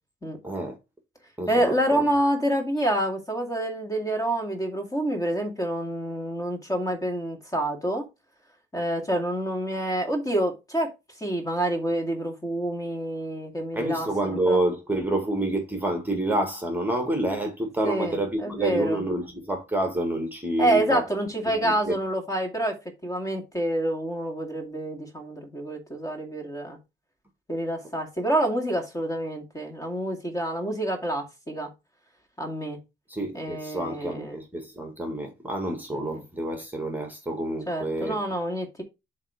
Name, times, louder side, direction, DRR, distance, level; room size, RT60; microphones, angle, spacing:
voice 1, 0.4-0.8 1.4-2.0 13.8-21.0 21.5-21.9 33.1-38.2, right 1 dB, 10° right, 1.8 m, -28 dB
voice 2, 1.5-8.1 8.7-10.9 11.2-14.6 17.8-19.1 20.6-22.8 23.0-26.8 27.5-31.7 32.4-32.8 33.3-34.4 35.9-36.2 37.7-38.8, right 1 dB, 15° left, 2.1 m, -27 dB
7.3 x 3.2 x 4.9 m
cardioid pair, 90°, 20 cm